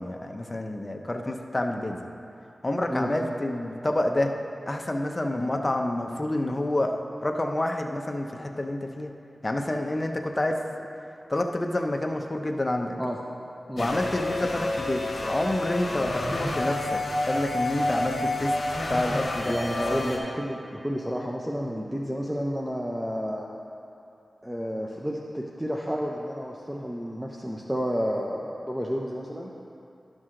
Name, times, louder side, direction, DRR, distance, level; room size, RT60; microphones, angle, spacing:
voice 1, 0.0-2.1 2.6-4.3 4.7-9.1 9.4-10.7 11.3-12.9 13.8-18.5 18.9-19.6 19.9-20.1, left 1 dB, 30° left, 3 dB, 0.7 m, -28 dB
sound 1, 13.8-20.2, left 2 dB, 70° left, 1.4 m, -29 dB
voice 2, 19.5-23.5 24.4-29.5, equal, 5° right, -2 dB, 0.6 m, -31 dB
11.5 x 6.2 x 3.8 m, 2.6 s
wide cardioid pair, 70°, 0 cm